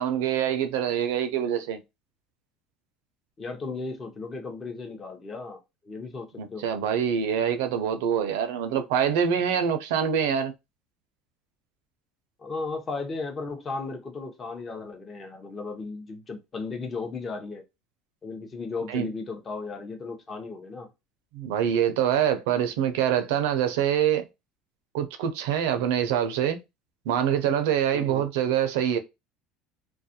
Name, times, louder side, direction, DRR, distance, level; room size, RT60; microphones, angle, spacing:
voice 1, 0.0-1.8 6.4-10.5 18.9-19.1 21.3-24.2 24.9-26.6 27.1-29.0, right 9 dB, 85° right, 0.4 m, -25 dB
voice 2, 3.4-6.6 12.4-17.6 18.2-20.9 27.9-28.2, left 4 dB, 30° left, 0.6 m, -35 dB
2.4 x 2.1 x 2.7 m
supercardioid pair, 115°, 0 cm